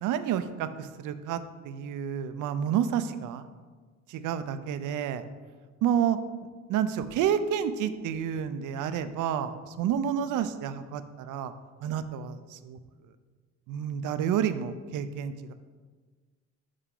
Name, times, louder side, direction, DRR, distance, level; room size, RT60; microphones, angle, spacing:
voice 1, 0.0-3.5 4.1-5.2 5.8-6.2 6.7-11.5 11.8-12.8 13.7-15.5, right 9 dB, 80° right, 11 dB, 0.5 m, -30 dB
6.3 x 5.6 x 3.8 m, 1.4 s
cardioid pair, 90°, 30 cm